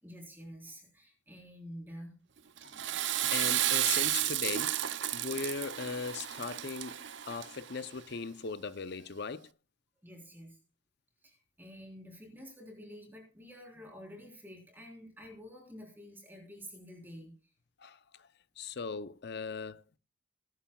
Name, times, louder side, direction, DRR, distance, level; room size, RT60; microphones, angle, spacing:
voice 1, 0.0-2.2 2.7-2.9 10.0-10.6 11.2-17.3, equal, 10° right, 3.9 m, -49 dB
voice 2, 2.6-4.8 5.1-9.5 17.8-18.3 18.6-19.8, left 5 dB, 50° left, 0.6 m, -39 dB
Water / Toilet flush, 2.6-7.8, right 13 dB, 60° right, 0.6 m, -32 dB
22.0 x 11.5 x 2.3 m
head